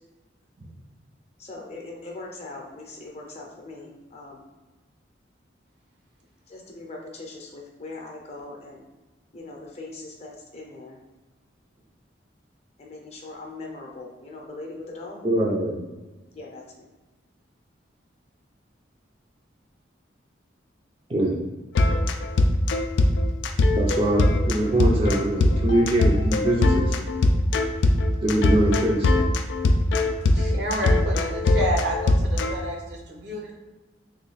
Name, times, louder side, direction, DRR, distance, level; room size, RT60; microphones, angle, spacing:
voice 1, 1.4-4.4 6.5-8.8 9.3-11.0 12.8-15.2 16.3-16.6, left 2 dB, 35° left, -1 dB, 0.6 m, -40 dB
voice 2, 15.2-15.9 21.1-21.4 23.8-27.0 28.2-29.1, right 1 dB, 30° right, -3 dB, 0.5 m, -23 dB
sound 1, 21.7-32.5, left 2 dB, 75° left, 0.3 m, -21 dB
voice 3, 30.3-33.5, equal, 65° right, -1 dB, 0.8 m, -30 dB
3.1 x 2.3 x 4.0 m, 1.2 s
head